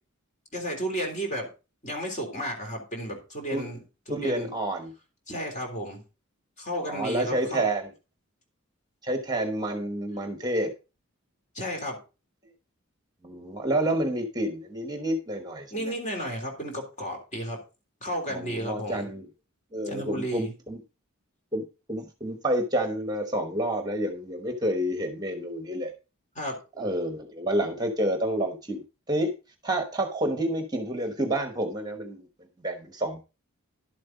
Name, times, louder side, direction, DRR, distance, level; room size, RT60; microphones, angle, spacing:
voice 1, 0.5-1.5 1.8-3.8 4.1-4.5 5.3-6.0 6.6-7.7 11.6-12.0 15.7-17.6 18.0-19.1 19.9-20.5 26.4-26.6, equal, 35° left, 2 dB, 3.4 m, -33 dB
voice 2, 4.1-4.9 6.8-7.9 9.0-10.7 13.2-15.9 18.3-19.2 19.7-20.8 21.5-21.6 21.9-25.9 26.8-29.3 29.6-32.2 32.6-33.2, right 1 dB, 20° right, 6 dB, 1.1 m, -29 dB
11.5 x 7.6 x 3.9 m, 0.31 s
head